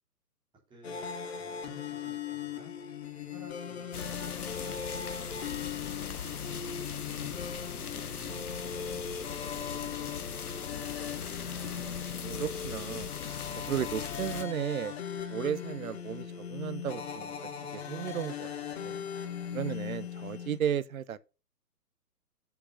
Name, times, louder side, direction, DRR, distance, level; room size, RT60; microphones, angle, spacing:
voice 1, 0.7-2.7 3.3-6.3 6.9-8.1, left 1 dB, 10° right, 3.7 m, -54 dB
sound 1, 0.8-20.6, left 7 dB, 40° left, 1.5 m, -39 dB
sound 2, 3.9-14.5, left 7 dB, 65° left, 1.1 m, -40 dB
voice 2, 7.9-8.4 11.5-13.4 13.7-14.9 15.3-17.3 17.7-19.0 19.5-21.2, right 9 dB, 60° right, 0.7 m, -35 dB
7.9 x 6.9 x 5.4 m
figure-of-eight pair, 130°, 48 cm